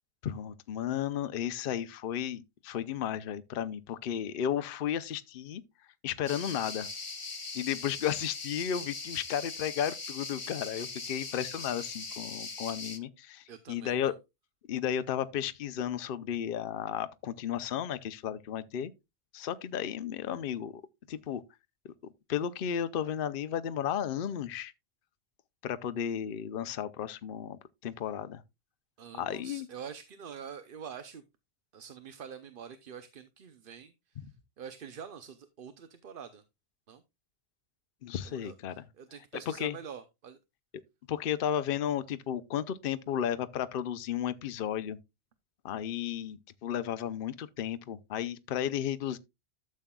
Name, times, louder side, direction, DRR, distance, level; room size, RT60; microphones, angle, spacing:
voice 1, 0.2-5.6 6.0-6.9 7.5-14.1 14.7-18.9 19.3-20.8 21.1-21.4 22.3-24.7 25.6-28.4 29.2-29.7 38.0-38.9 39.5-39.8 41.1-45.0 45.6-49.2, left 9 dB, 60° left, 0.8 m, -33 dB
sound 1, 6.3-13.0, left 4 dB, 30° left, 0.9 m, -40 dB
voice 2, 13.5-14.1 29.0-31.2 31.7-34.2 34.6-36.4 36.9-37.0 38.2-40.4, right 7 dB, 55° right, 0.9 m, -46 dB
12.5 x 7.5 x 2.3 m
omnidirectional pair, 1.1 m